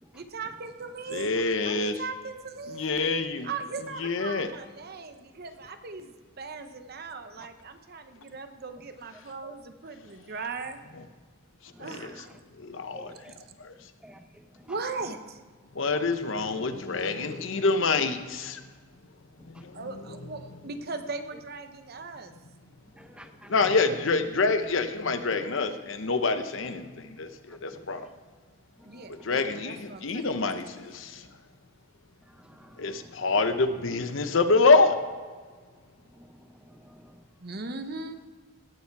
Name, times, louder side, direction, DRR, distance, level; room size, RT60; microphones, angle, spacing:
voice 1, 0.1-1.3 1.6-2.9 3.4-10.8 11.8-12.3 14.7-15.4 19.7-22.3 28.8-30.3 37.4-38.2, right 4 dB, 50° right, 8 dB, 0.9 m, -38 dB
voice 2, 1.1-1.9 2.7-3.5 4.0-4.5 11.8-12.1 12.6-13.1 13.6-13.7 15.8-18.6 19.5-19.9 20.2-20.3 23.5-28.1 29.2-31.2 32.8-34.9, left 3 dB, 65° left, 9 dB, 0.9 m, -26 dB
voice 3, 11.7-12.4 12.9-13.3 13.7-14.8 19.4-19.6 22.9-23.7 27.5-28.1 28.8-29.3 32.3-33.3 36.1-37.2, right 1 dB, 5° right, 7 dB, 0.8 m, -52 dB
17.5 x 7.2 x 4.7 m, 1.5 s
head